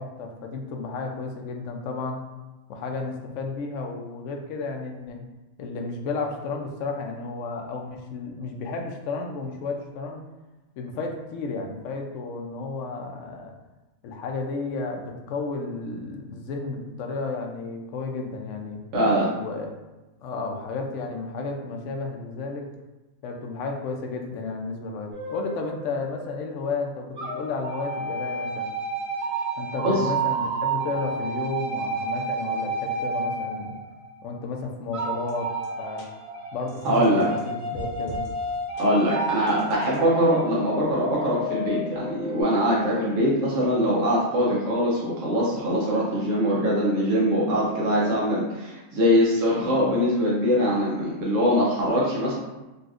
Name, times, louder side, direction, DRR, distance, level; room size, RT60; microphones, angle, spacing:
voice 1, 0.0-2.2 2.7-5.2 5.6-10.2 10.8-13.6 14.0-18.8 19.3-19.7 20.2-22.7 23.2-28.7 29.6-33.8 34.2-35.5 35.8-36.1 36.5-38.2, left 3 dB, 75° left, 2 dB, 0.9 m, -32 dB
voice 2, 18.9-19.3 29.8-30.0 36.8-37.3 38.8-52.4, equal, 75° right, -6 dB, 1.1 m, -22 dB
sound 1, 25.1-26.7 27.2-34.3 34.9-42.4, right 2 dB, 55° right, 1.3 m, -31 dB
sound 2, 35.3-35.4 35.6-35.7 36.0-36.1 36.7-37.4 37.7-38.3 38.8-38.9 39.5-40.0, right 2 dB, 45° left, 0.7 m, -41 dB
3.9 x 2.4 x 2.4 m, 1.1 s
omnidirectional pair, 1.3 m